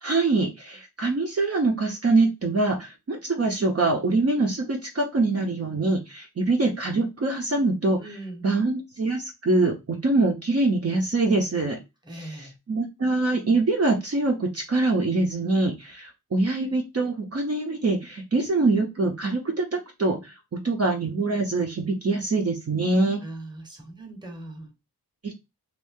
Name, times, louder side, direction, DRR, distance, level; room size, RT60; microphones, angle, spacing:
voice 1, 0.0-8.2 8.4-11.8 12.1-23.2 25.2-25.4, right 3 dB, 40° right, 0.7 m, -24 dB
voice 2, 8.0-8.5 12.0-12.5 23.2-24.7, right 1 dB, 10° right, 1.0 m, -40 dB
2.7 x 2.6 x 3.6 m
wide cardioid pair, 110°, 36 cm